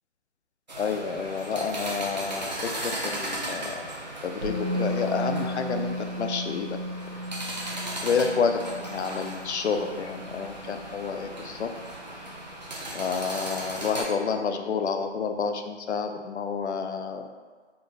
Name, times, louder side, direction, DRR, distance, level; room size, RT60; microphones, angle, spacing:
sound 1, 0.7-14.0, right 1 dB, 40° right, 0.6 m, -37 dB
voice 1, 0.8-3.9 4.2-6.8 8.0-11.7 12.9-17.3, left 5 dB, 70° left, 6 dB, 0.5 m, -29 dB
Musical instrument, 4.4-12.3 12.6-12.8, equal, 60° right, 1.3 m, -35 dB
4.4 x 2.6 x 3.2 m, 1.5 s
hypercardioid pair, 175°, 35 cm